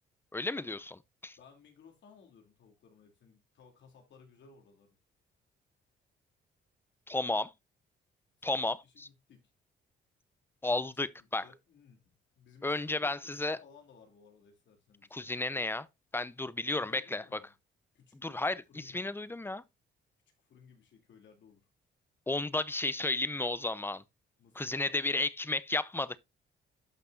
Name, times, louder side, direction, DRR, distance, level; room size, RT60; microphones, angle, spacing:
voice 1, 0.3-1.4 7.1-7.5 8.4-9.1 10.6-11.4 12.6-13.6 15.1-15.9 16.1-17.4 18.2-19.6 22.3-24.0 24.6-26.2, left 2 dB, 10° left, 0.7 m, -33 dB
voice 2, 1.3-5.0 8.4-9.5 10.6-12.0 12.3-15.2 16.7-17.5 17.9-19.4 20.4-21.6 24.4-25.1, left 6 dB, 65° left, 3.1 m, -59 dB
12.0 x 6.0 x 2.6 m
cardioid pair, 90°, 20 cm